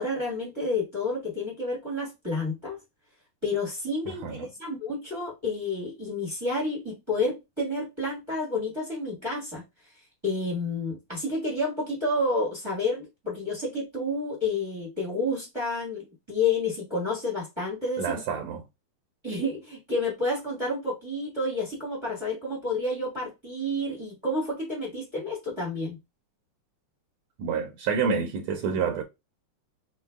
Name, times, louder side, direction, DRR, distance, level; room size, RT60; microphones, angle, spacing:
voice 1, 0.0-2.8 3.4-9.6 10.2-18.2 19.2-26.0, left 2 dB, 20° right, 0.8 m, -30 dB
voice 2, 4.1-4.5 18.0-18.6 27.4-29.0, right 6 dB, 75° right, 1.7 m, -28 dB
6.1 x 2.3 x 2.3 m
omnidirectional pair, 3.5 m